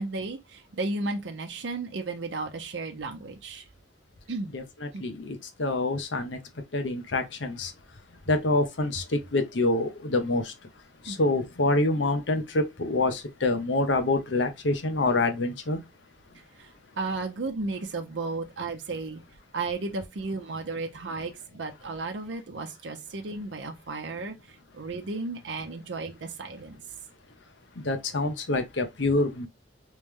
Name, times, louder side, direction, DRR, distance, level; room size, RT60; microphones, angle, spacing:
voice 1, 0.0-3.7 4.3-4.5 4.9-5.1 11.0-11.2 16.6-19.2 19.5-26.8, right 3 dB, 80° right, 0.6 m, -34 dB
voice 2, 4.5-6.4 6.7-7.7 8.3-10.5 11.1-15.8 27.8-29.5, left 2 dB, 90° left, 0.8 m, -26 dB
3.2 x 3.2 x 3.5 m
head